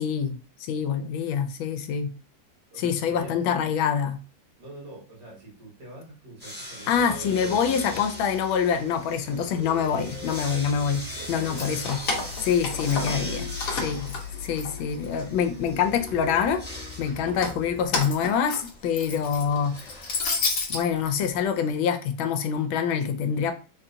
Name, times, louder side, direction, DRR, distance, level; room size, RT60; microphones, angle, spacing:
voice 1, 0.0-2.1 2.8-4.2 6.9-12.0 12.4-16.6 17.0-19.8 20.7-23.5, left 7 dB, 80° left, 1.3 m, -26 dB
voice 2, 2.7-3.4 4.6-8.0 9.3-9.6 11.2-11.7 12.7-13.0 15.0-15.1, right 2 dB, 60° right, 2.0 m, -44 dB
sound 1, 6.4-21.7, equal, 5° right, 1.0 m, -42 dB
sound 2, 6.9-17.9, left 4 dB, 80° right, 1.6 m, -40 dB
Keys jangling, 11.4-13.3 13.6-15.2 15.6-16.4 17.2-20.8, left 3 dB, 55° left, 1.0 m, -31 dB
3.9 x 2.7 x 2.5 m
omnidirectional pair, 2.2 m